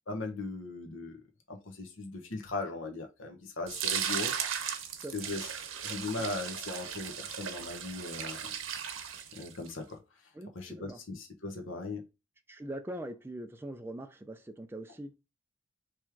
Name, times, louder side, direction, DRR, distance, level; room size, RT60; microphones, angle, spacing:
voice 1, 0.1-1.2 1.5-5.5 5.8-8.5 9.3-10.2 10.5-12.1, left 3 dB, 80° left, 1.0 m, -39 dB
sound 1, 3.7-9.7, right 8 dB, 85° right, 0.8 m, -36 dB
voice 2, 5.0-5.3 10.3-11.0 12.5-15.2, right 1 dB, 10° right, 0.4 m, -42 dB
3.5 x 3.1 x 4.6 m
head